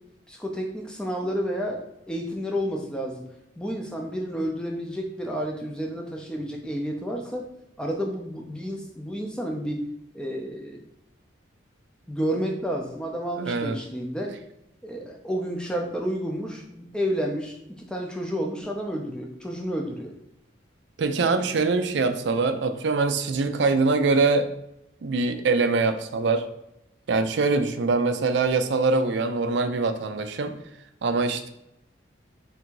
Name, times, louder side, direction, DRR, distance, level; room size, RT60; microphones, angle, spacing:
voice 1, 0.3-3.3 3.6-7.4 7.8-9.8 10.1-10.8 12.1-14.3 14.8-20.1, equal, 5° left, 1 dB, 0.5 m, -30 dB
voice 2, 13.4-13.8 21.0-24.5 25.0-26.4 27.1-30.5 31.0-31.5, right 3 dB, 60° right, 8 dB, 0.4 m, -23 dB
3.5 x 2.6 x 4.5 m, 0.83 s
head